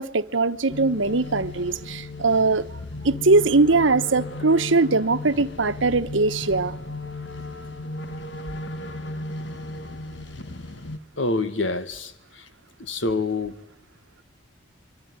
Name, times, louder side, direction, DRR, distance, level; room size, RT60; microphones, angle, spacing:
voice 1, 0.0-2.7 3.0-6.7, right 3 dB, 85° right, 1.1 m, -21 dB
sound 1, 0.7-11.0, left 2 dB, 65° left, 1.6 m, -35 dB
voice 2, 11.2-12.4 12.8-13.6, left 3 dB, 85° left, 1.8 m, -27 dB
24.5 x 24.0 x 9.7 m
head